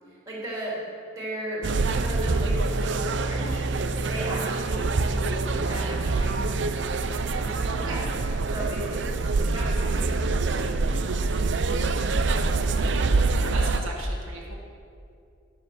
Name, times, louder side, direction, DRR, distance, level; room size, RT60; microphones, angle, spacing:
voice 1, 0.1-0.9 1.1-3.6 4.0-6.5 7.3-8.1 8.5-11.4, right 1 dB, 15° right, -6 dB, 3.2 m, -36 dB
sound 1, 1.6-13.8, right 3 dB, 55° right, 0.5 m, -25 dB
voice 2, 13.4-14.5, right 2 dB, 80° right, -2 dB, 1.7 m, -37 dB
11.5 x 7.5 x 6.2 m, 2.5 s
head